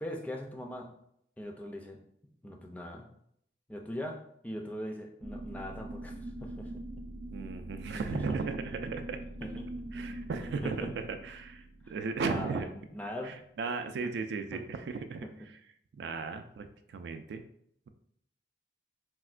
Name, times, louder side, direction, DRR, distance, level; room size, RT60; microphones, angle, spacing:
voice 1, 0.0-0.9 1.4-2.0 2.4-3.1 3.7-6.8 7.9-8.4 9.4-9.7 10.4-10.9 11.8-11.9 12.2-13.4 13.7-13.8 14.5-14.6 15.2-15.3, left 1 dB, 10° left, 1 dB, 0.3 m, -40 dB
sound 1, 5.2-13.1, right 1 dB, 45° right, 0.7 m, -43 dB
voice 2, 7.3-9.2 9.9-12.7 13.2-15.6 15.9-17.4, right 4 dB, 75° right, 8 dB, 0.3 m, -36 dB
4.3 x 2.1 x 2.4 m, 0.70 s
head